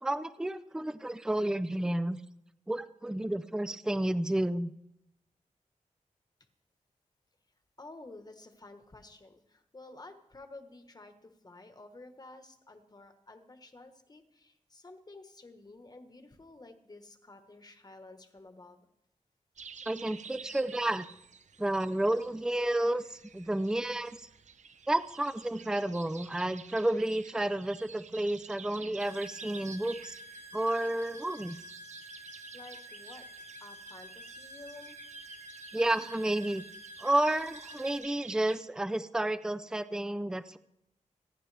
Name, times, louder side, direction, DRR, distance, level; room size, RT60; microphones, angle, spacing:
voice 1, 0.0-2.2 2.7-4.7 19.9-21.1 21.6-24.3 24.9-30.2 30.5-31.6 35.7-36.6 37.0-40.6, right 1 dB, 5° right, 11 dB, 0.5 m, -31 dB
voice 2, 7.8-18.9 32.5-33.3 33.6-35.0, left 2 dB, 30° left, 7 dB, 1.3 m, -51 dB
sound 1, 19.6-38.6, right 6 dB, 70° right, 0.7 m, -51 dB
sound 2, 29.0-38.0, equal, 90° right, 5.3 m, -49 dB
26.5 x 10.0 x 3.4 m, 0.82 s
wide cardioid pair, 125°, 13 cm